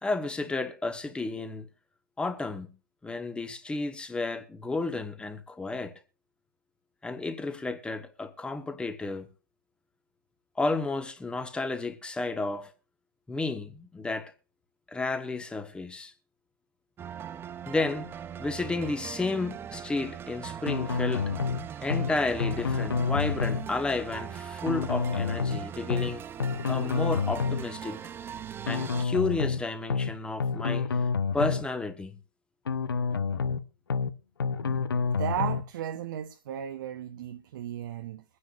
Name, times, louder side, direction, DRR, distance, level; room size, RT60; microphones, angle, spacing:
voice 1, 0.0-1.7 2.2-2.7 3.0-5.9 7.0-9.3 10.6-12.7 13.3-14.3 14.9-16.1 17.7-18.1 18.4-21.3 21.8-26.2 26.7-28.0 28.6-30.9 31.3-32.1, left 3 dB, 10° left, 1.2 m, -32 dB
sound 1, 17.0-29.1, right 8 dB, 20° right, 0.5 m, -40 dB
sound 2, 20.7-21.6 21.9-22.1 22.4-23.6 24.7-25.6 25.9-26.1 26.4-27.6 28.7-29.6 29.9-30.1 30.4-31.6 32.7-33.6 33.9-34.1 34.4-35.6, left 5 dB, 80° left, 0.7 m, -28 dB
voice 2, 35.1-38.2, right 10 dB, 60° right, 0.8 m, -35 dB
23.0 x 9.7 x 2.4 m
hypercardioid pair, 110°, 12 cm